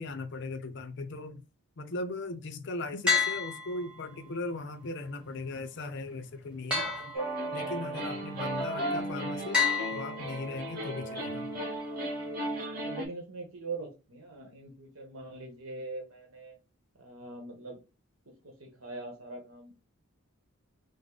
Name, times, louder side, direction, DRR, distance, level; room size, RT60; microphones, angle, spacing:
voice 1, 0.0-1.4 1.8-7.1 7.5-9.6 9.9-11.5, left 2 dB, 55° left, 0.6 m, -38 dB
sound 1, 3.1-4.3 6.7-7.8 9.5-10.8, left 6 dB, 5° right, 1.2 m, -30 dB
sound 2, 7.1-13.1, right 1 dB, 45° right, 1.5 m, -35 dB
voice 2, 12.7-16.6 17.0-17.8 18.4-19.7, right 3 dB, 70° right, 1.1 m, -42 dB
5.1 x 2.1 x 3.8 m
head